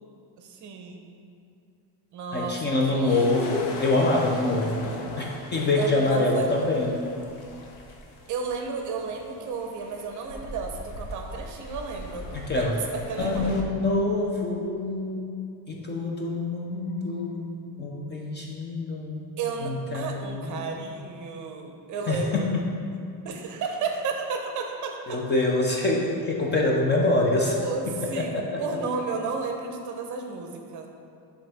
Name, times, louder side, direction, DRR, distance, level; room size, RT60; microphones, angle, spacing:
voice 1, 0.4-1.1 2.1-3.4 5.8-6.5 8.3-13.6 19.4-22.5 23.2-25.2 27.6-28.3 28.6-30.9, right 5 dB, 45° right, 3 dB, 0.7 m, -33 dB
voice 2, 2.3-6.9 12.3-12.8 13.2-15.3 15.7-19.3 19.6-20.6 22.1-22.7 25.1-27.6 27.8-28.8, left 2 dB, 25° left, -1 dB, 0.4 m, -26 dB
sound 1, 3.1-13.6, left 2 dB, 80° left, 0.9 m, -40 dB
10.0 x 3.5 x 3.4 m, 2.5 s
cardioid pair, 160°, 43 cm